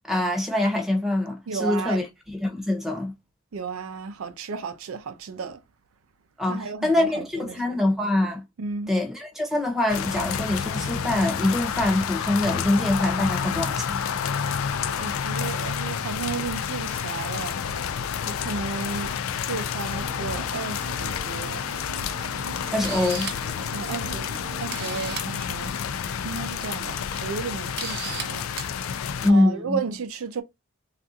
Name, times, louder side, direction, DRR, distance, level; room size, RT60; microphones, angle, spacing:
voice 1, 0.1-2.0 2.3-3.1 6.4-8.4 8.9-14.0 22.7-23.3 29.2-29.8, left 1 dB, ahead, 0.7 m, -24 dB
voice 2, 1.5-2.0 3.5-5.6 6.5-7.8 8.6-8.9 14.9-17.6 18.2-19.1 19.4-21.7 23.7-24.3 24.6-25.7 26.2-28.5 29.3-30.4, right 5 dB, 90° right, 0.5 m, -33 dB
sound 1, 9.9-29.3, left 7 dB, 80° left, 0.4 m, -29 dB
sound 2, 19.8-25.2, right 3 dB, 25° left, 0.9 m, -43 dB
Camera, 22.2-22.3 22.7-23.5 24.3-24.4 24.7-25.3 26.4-26.7 27.1-27.2 27.8-28.2 28.6-28.7, right 6 dB, 50° right, 0.7 m, -34 dB
3.4 x 2.4 x 2.7 m
head